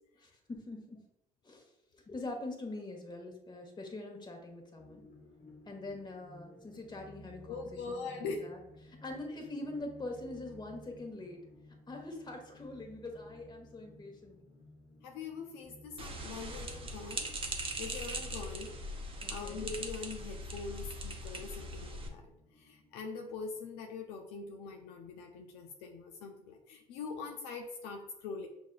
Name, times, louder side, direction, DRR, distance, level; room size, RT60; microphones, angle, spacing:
voice 1, 0.2-1.0 1.4-5.0 5.7-11.4 11.9-14.4 19.2-19.6, left 2 dB, 25° left, 2 dB, 1.2 m, -44 dB
sound 1, 4.8-23.9, left 1 dB, 50° left, 1.1 m, -58 dB
voice 2, 7.5-8.5 15.0-17.3 17.8-18.7 19.3-28.5, left 4 dB, 65° left, 3 dB, 0.5 m, -43 dB
sound 2, 16.0-22.1, right 1 dB, 30° right, 0.8 m, -40 dB
6.1 x 2.6 x 2.3 m, 0.82 s
hypercardioid pair, 55°, 19 cm